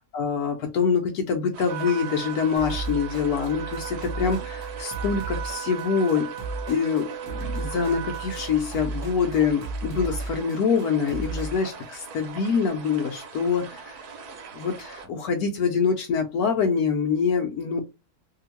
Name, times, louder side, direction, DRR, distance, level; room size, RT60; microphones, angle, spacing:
voice 1, 0.1-6.3 6.7-14.0 14.5-17.8, left 6 dB, 75° left, 1.1 m, -25 dB
sound 1, 1.5-15.1, right 5 dB, 75° right, 1.3 m, -42 dB
Trumpet, 1.7-8.6, right 10 dB, 55° right, 1.0 m, -37 dB
sound 2, 2.6-11.7, right 3 dB, 30° right, 0.6 m, -35 dB
2.8 x 2.7 x 2.9 m
omnidirectional pair, 1.7 m